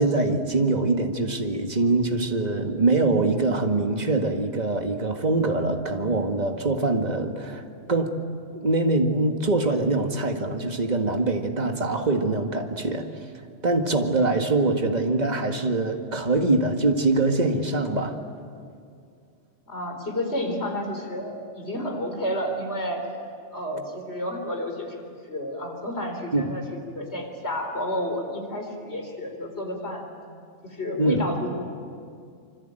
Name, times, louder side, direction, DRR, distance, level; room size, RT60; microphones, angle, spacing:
voice 1, 0.0-7.6 7.9-8.2 8.5-13.1 13.6-18.2 26.3-26.4 31.0-31.2, right 2 dB, 35° right, 4 dB, 1.9 m, -23 dB
voice 2, 19.7-23.0 23.5-25.0 25.2-26.6 26.9-30.1 30.6-31.5, left 1 dB, 65° left, 3 dB, 4.6 m, -30 dB
26.0 x 25.5 x 9.0 m, 2.3 s
omnidirectional pair, 1.2 m